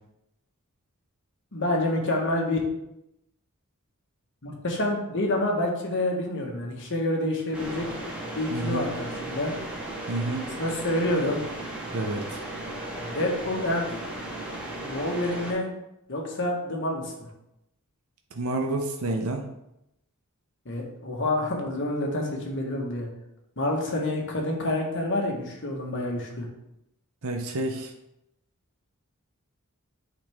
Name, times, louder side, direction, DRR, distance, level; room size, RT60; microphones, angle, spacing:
voice 1, 1.5-2.6 4.4-7.9 8.3-9.5 10.6-11.4 13.0-13.8 14.8-15.7 16.1-17.1 20.6-23.1 23.6-26.5, left 1 dB, 55° left, 0 dB, 1.4 m, -28 dB
sound 1, 7.5-15.5, right 1 dB, 5° right, 1.6 m, -36 dB
voice 2, 8.5-8.9 10.1-10.5 11.9-12.4 18.4-19.4 27.2-27.9, right 2 dB, 70° right, 3 dB, 0.7 m, -29 dB
8.8 x 4.1 x 3.6 m, 0.85 s
head